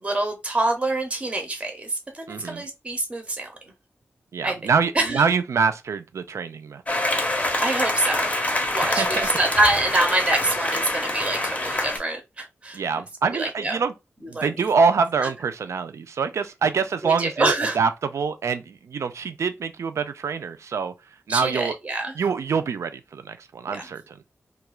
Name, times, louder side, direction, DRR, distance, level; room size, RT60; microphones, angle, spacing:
voice 1, 0.0-3.5 4.4-4.6 4.9-5.2 7.6-8.3 8.7-12.8 13.3-13.8 14.3-14.5 15.2-15.3 17.0-17.8 21.3-22.1 23.7-23.9, right 2 dB, 25° right, 0.6 m, -25 dB
voice 2, 2.3-2.6 4.3-7.0 9.0-9.3 12.7-13.9 14.3-20.9 21.3-21.8 22.2-24.2, right 5 dB, 75° right, 0.3 m, -25 dB
sound 1, 6.9-12.0, left 1 dB, 30° left, 0.6 m, -25 dB
2.3 x 2.2 x 3.0 m
wide cardioid pair, 125°, 5 cm